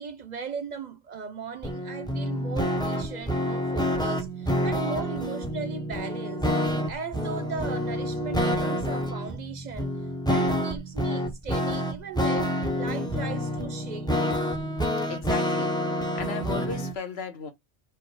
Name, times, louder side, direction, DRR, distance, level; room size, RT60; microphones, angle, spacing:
voice 1, 0.0-14.3, right 5 dB, 55° right, 0.6 m, -38 dB
sound 1, 1.6-16.9, equal, 5° left, 0.6 m, -28 dB
voice 2, 15.1-17.5, left 5 dB, 85° left, 1.3 m, -36 dB
4.6 x 2.4 x 4.6 m
omnidirectional pair, 1.0 m